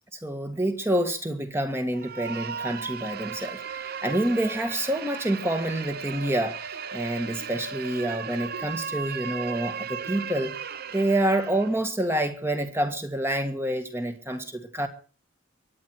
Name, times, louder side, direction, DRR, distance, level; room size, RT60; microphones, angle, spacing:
voice 1, 0.2-10.5 10.9-14.9, right 1 dB, 10° right, 1.7 m, -27 dB
sound 1, 1.9-11.8, right 6 dB, 45° right, 0.7 m, -36 dB
sound 2, 3.8-9.7, right 3 dB, 85° right, 4.1 m, -49 dB
23.5 x 9.7 x 4.6 m
head